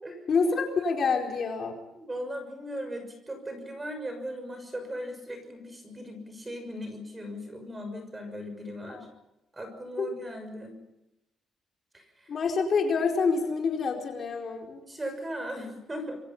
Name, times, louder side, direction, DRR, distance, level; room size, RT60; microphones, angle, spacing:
voice 1, 0.3-1.7 8.9-9.0 10.0-10.1 12.3-14.8, left 5 dB, 40° left, 1 dB, 4.6 m, -27 dB
voice 2, 1.9-9.1 9.5-10.8 11.9-12.3 14.9-16.2, equal, 15° right, 7 dB, 6.3 m, -38 dB
27.0 x 24.5 x 5.7 m, 0.91 s
cardioid pair, 150°, 0 cm